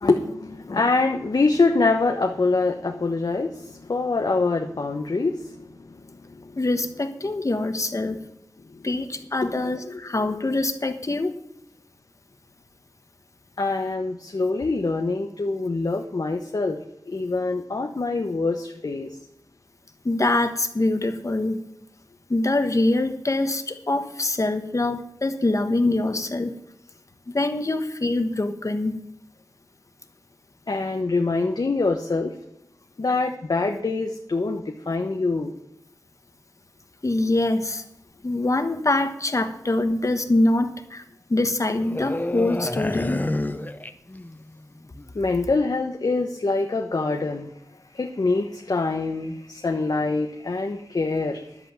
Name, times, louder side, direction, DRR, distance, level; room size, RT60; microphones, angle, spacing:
voice 1, 0.0-6.6 8.7-8.9 9.4-10.0 13.6-16.8 17.1-19.2 30.7-32.3 33.0-35.5 45.1-47.5 47.9-51.6, left 3 dB, 60° left, 4 dB, 1.0 m, -25 dB
voice 2, 6.6-8.2 8.8-11.3 20.0-21.6 22.3-26.6 27.3-29.0 37.0-37.8 38.2-41.0 41.3-43.2, left 2 dB, 45° left, 8 dB, 1.3 m, -24 dB
sound 1, 41.8-44.5 44.8-45.0, left 1 dB, 20° left, 0.8 m, -29 dB
11.0 x 8.2 x 7.5 m, 0.79 s
wide cardioid pair, 80°, 8 cm